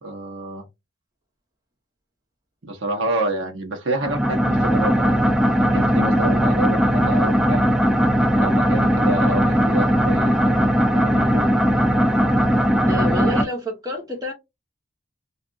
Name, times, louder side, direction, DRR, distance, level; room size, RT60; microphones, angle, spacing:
voice 1, 0.0-0.6 2.6-7.7 8.4-11.5, right 1 dB, 65° right, 0.9 m, -28 dB
sound 1, 4.0-13.4, equal, 5° right, 0.3 m, -18 dB
voice 2, 12.9-14.3, left 1 dB, 20° right, 1.2 m, -28 dB
3.4 x 2.5 x 2.5 m
head